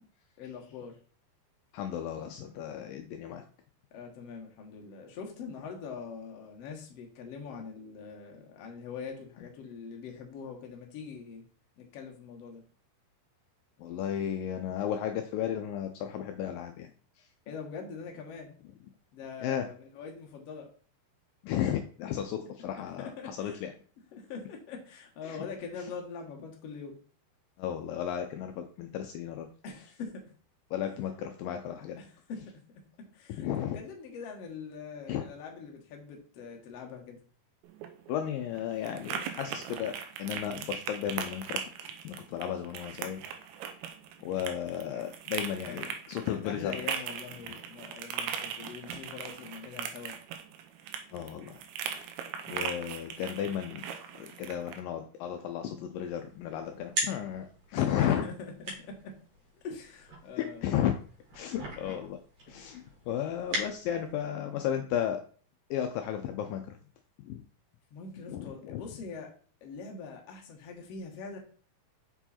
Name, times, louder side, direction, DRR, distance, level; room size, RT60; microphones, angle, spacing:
voice 1, 0.4-0.9 3.9-11.4 11.8-12.6 17.5-18.5 19.1-20.7 22.6-22.7 23.0-23.6 24.1-27.0 29.6-30.2 32.0-32.6 33.1-37.2 45.7-45.8 46.3-50.1 57.7-57.9 58.2-59.1 59.6-60.7 67.9-69.3 69.6-71.4, left 5 dB, 60° left, 2 dB, 1.8 m, -43 dB
voice 2, 1.7-3.4 13.8-16.9 17.2-17.3 19.4-19.7 21.4-23.7 25.2-25.5 25.8-25.9 27.6-29.5 30.7-32.0 33.3-33.8 35.1-35.3 38.1-41.6 42.0-43.2 44.2-46.9 51.1-51.6 52.5-53.8 54.2-58.2 60.4-60.9 61.3-62.2 62.5-65.2 65.7-66.8 67.2-67.4 68.3-68.8, left 10 dB, 85° left, 6 dB, 2.0 m, -34 dB
sound 1, 37.6-54.8, right 8 dB, 80° right, 2.6 m, -39 dB
sound 2, 56.0-64.3, right 1 dB, 55° right, 3.4 m, -41 dB
6.6 x 4.6 x 4.3 m, 0.42 s
omnidirectional pair, 4.6 m